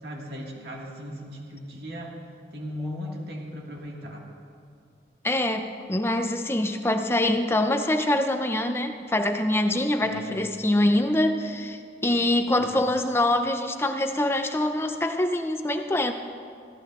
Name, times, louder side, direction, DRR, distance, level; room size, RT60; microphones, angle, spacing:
voice 1, 0.0-2.2 2.5-4.2 10.0-10.4 12.6-12.8, equal, 70° right, -1 dB, 1.9 m, -37 dB
voice 2, 5.2-16.1, left 1 dB, 15° left, 6 dB, 0.5 m, -24 dB
15.5 x 15.0 x 2.5 m, 2.3 s
head